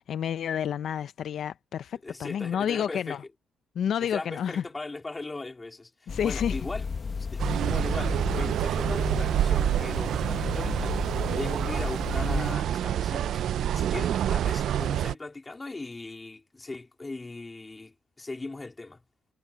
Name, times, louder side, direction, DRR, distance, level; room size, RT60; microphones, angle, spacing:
voice 1, 0.0-3.2 3.8-4.6 6.1-6.6, left 9 dB, 65° left, 0.6 m, -30 dB
voice 2, 2.0-3.2 4.0-6.9 7.3-19.0, left 3 dB, 20° left, 3.7 m, -39 dB
sound 1, 6.1-12.5, left 5 dB, 40° left, 1.2 m, -34 dB
sound 2, 7.4-15.1, right 10 dB, 70° right, 0.4 m, -27 dB
cardioid pair, 90°, 0 cm